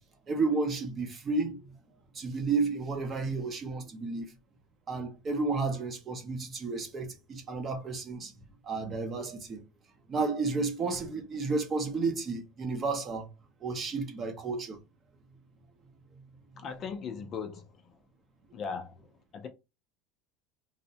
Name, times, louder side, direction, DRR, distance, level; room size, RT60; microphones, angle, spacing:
voice 1, 0.3-1.7 2.1-4.3 4.9-8.3 8.6-9.6 10.1-13.3 13.6-14.8 18.5-18.6, right 4 dB, 25° right, 0.6 m, -32 dB
voice 2, 16.6-17.7 18.5-19.5, left 6 dB, 30° left, 0.4 m, -38 dB
2.7 x 2.0 x 2.7 m
cardioid pair, 160°, 0 cm